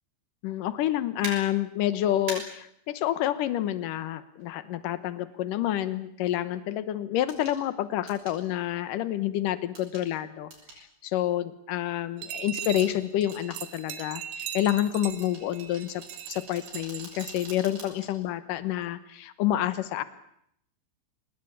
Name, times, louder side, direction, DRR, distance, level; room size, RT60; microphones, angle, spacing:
voice 1, 0.4-10.5 10.8-16.0 16.3-20.0, left 12 dB, 75° left, 13 dB, 2.0 m, -28 dB
sound 1, 1.2-1.3 2.3-2.4 4.4-4.5 7.3-7.6 8.1-8.4 9.7-10.1 10.5-10.8 12.6-12.9 13.3-13.6 15.2-18.1 18.5-18.7, right 3 dB, 50° right, 7.9 m, -42 dB
sound 2, 12.2-17.6, right 10 dB, 75° right, 4.1 m, -40 dB
25.5 x 19.5 x 8.7 m, 0.73 s
omnidirectional pair, 5.4 m